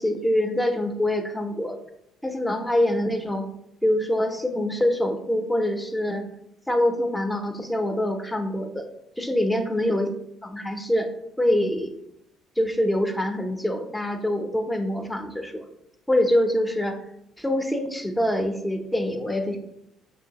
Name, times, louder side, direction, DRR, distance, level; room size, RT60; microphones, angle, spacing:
voice 1, 0.0-1.8 2.2-3.5 3.8-6.3 6.7-8.9 9.2-10.1 10.4-11.1 11.4-12.0 12.6-15.7 16.1-17.0 17.4-19.6, left 1 dB, 10° left, 6 dB, 0.7 m, -25 dB
5.5 x 2.8 x 2.9 m, 0.78 s
hypercardioid pair, 60°, 0 cm